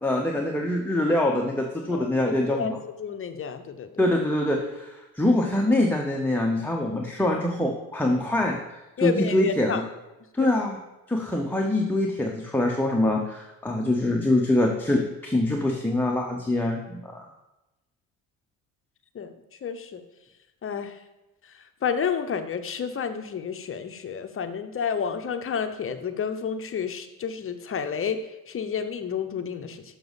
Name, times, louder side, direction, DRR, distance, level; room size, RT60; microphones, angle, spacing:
voice 1, 0.0-2.8 4.0-9.8 10.3-10.8 11.1-17.2, left 1 dB, 5° left, 0 dB, 0.8 m, -24 dB
voice 2, 3.0-3.9 9.0-9.8 10.4-10.5 19.1-19.3 19.6-20.0 20.6-20.9 21.8-28.2 28.5-29.8, left 7 dB, 35° left, 9 dB, 0.7 m, -30 dB
6.7 x 6.1 x 4.0 m, 1.0 s
supercardioid pair, 70°, 38 cm